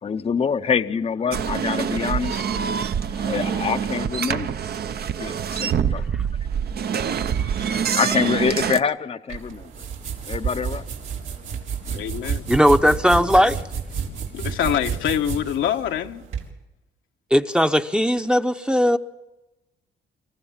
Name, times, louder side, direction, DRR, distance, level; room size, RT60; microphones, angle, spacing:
voice 1, 0.0-2.4 3.2-4.6 5.1-6.1 7.4-9.9 10.3-10.9, left 6 dB, 30° left, 0.7 m, -26 dB
sound 1, 1.3-8.8, right 7 dB, 55° right, 0.8 m, -25 dB
sound 2, 9.3-16.5, right 6 dB, 80° right, 3.9 m, -30 dB
voice 2, 11.9-12.5 14.3-16.2, left 10 dB, 85° left, 1.3 m, -25 dB
voice 3, 12.5-13.6 17.3-19.0, equal, 5° right, 0.8 m, -18 dB
26.0 x 15.0 x 7.3 m
cardioid pair, 90°, 20 cm